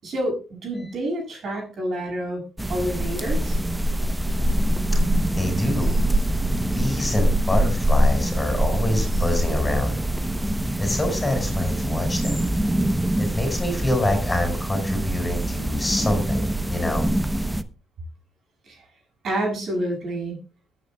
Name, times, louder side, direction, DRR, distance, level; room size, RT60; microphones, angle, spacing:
voice 1, 0.0-2.4 2.7-3.6 18.7-18.8 19.2-20.4, right 1 dB, 60° right, 1 dB, 7.0 m, -28 dB
sound 1, 2.6-17.6, right 1 dB, 10° right, 0.9 m, -24 dB
voice 2, 5.3-5.9 6.7-10.0 10.8-12.4 13.2-17.1, left 1 dB, 20° left, 4 dB, 5.7 m, -26 dB
21.5 x 9.0 x 2.3 m, 0.32 s
cardioid pair, 90°, 0 cm